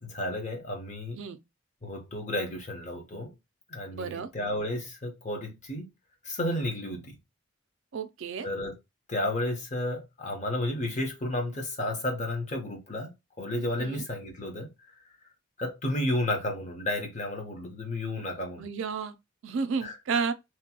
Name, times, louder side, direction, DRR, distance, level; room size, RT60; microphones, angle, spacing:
voice 1, 0.0-1.2 1.8-3.3 3.7-5.9 6.2-7.2 8.4-8.7 9.1-14.7 15.6-18.7 19.8-20.2, left 1 dB, 35° left, 0.8 m, -32 dB
voice 2, 3.9-4.3 7.9-8.5 13.8-14.0 18.6-19.1 19.4-20.3, right 5 dB, 65° right, 0.4 m, -32 dB
2.9 x 2.2 x 2.9 m
head